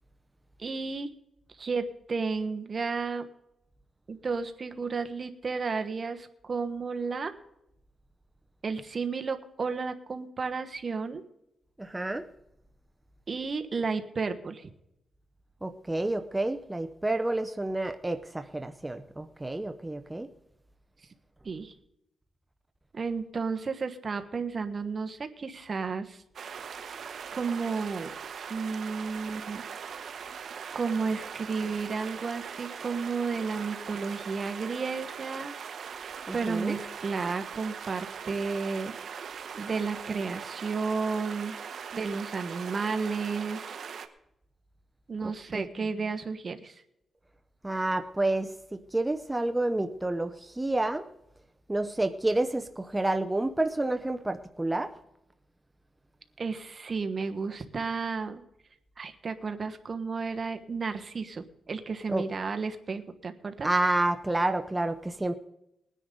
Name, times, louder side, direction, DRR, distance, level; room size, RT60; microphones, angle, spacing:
voice 1, 0.6-1.1 1.6-3.3 4.1-7.3 8.6-11.2 13.3-14.7 21.4-21.7 22.9-26.2 27.3-28.1 28.5-29.6 30.7-35.5 36.3-38.9 39.5-41.5 41.9-43.7 45.1-46.8 56.4-58.4 59.0-63.7, right 4 dB, 45° right, 7 dB, 1.3 m, -32 dB
voice 2, 11.8-12.2 15.6-20.3 36.3-36.8 45.2-45.6 47.6-51.0 51.7-54.9 62.1-62.2 63.6-65.3, right 2 dB, 15° right, 7 dB, 0.7 m, -29 dB
sound 1, 26.3-44.1, right 7 dB, 65° right, 1.0 m, -40 dB
20.0 x 10.0 x 3.9 m, 0.82 s
cardioid pair, 100°, 0 cm